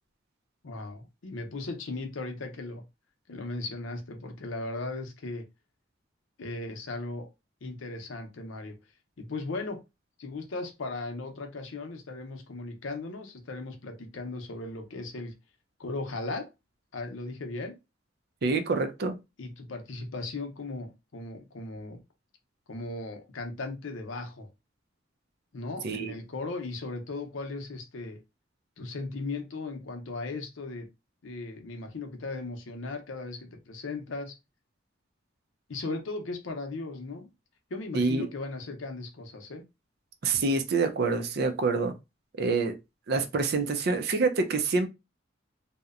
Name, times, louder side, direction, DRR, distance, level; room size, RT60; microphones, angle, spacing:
voice 1, 0.6-2.8 3.3-5.4 6.4-7.3 7.6-8.8 9.2-9.8 10.2-15.3 15.8-16.5 16.9-17.8 19.4-22.0 22.7-24.5 25.5-28.2 28.8-30.9 31.2-34.4 35.7-37.3 37.7-39.7, left 3 dB, 90° left, 0.6 m, -37 dB
voice 2, 18.4-19.2 25.8-26.1 37.9-38.3 40.2-41.9 42.4-42.8 43.1-44.9, right 3 dB, 55° right, 0.5 m, -26 dB
2.7 x 2.1 x 2.4 m
head